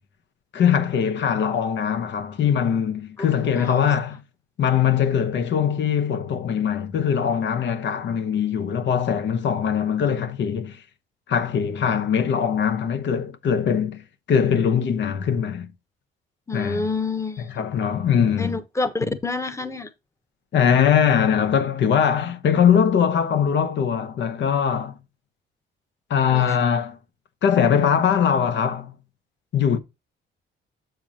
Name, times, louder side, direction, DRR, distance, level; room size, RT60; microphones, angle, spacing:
voice 1, 0.5-4.2 4.6-10.8 11.3-15.7 16.5-16.9 17.4-18.6 20.5-25.0 26.1-27.0 27.4-28.9 29.5-29.8, left 8 dB, 65° left, 1.1 m, -21 dB
voice 2, 3.6-3.9 16.5-17.5 18.4-19.9 26.3-26.6, left 3 dB, 15° left, 1.1 m, -28 dB
7.5 x 7.0 x 2.8 m
cardioid pair, 90°, 20 cm